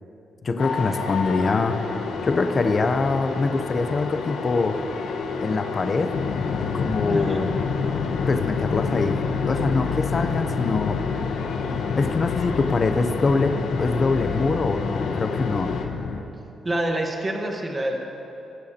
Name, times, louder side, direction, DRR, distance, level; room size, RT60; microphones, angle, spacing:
voice 1, 0.4-1.8 2.2-4.8 5.4-6.1 6.7-7.5 8.3-11.1 11.9-15.7, left 3 dB, 30° left, 8 dB, 0.6 m, -24 dB
sound 1, 0.6-15.8, left 4 dB, 90° left, 1.2 m, -31 dB
sound 2, 6.1-16.2, left 5 dB, 65° left, 0.7 m, -28 dB
voice 2, 7.1-7.4 16.6-18.0, right 1 dB, 15° right, 1 dB, 1.2 m, -26 dB
23.0 x 12.0 x 2.9 m, 2.9 s
wide cardioid pair, 175°, 0 cm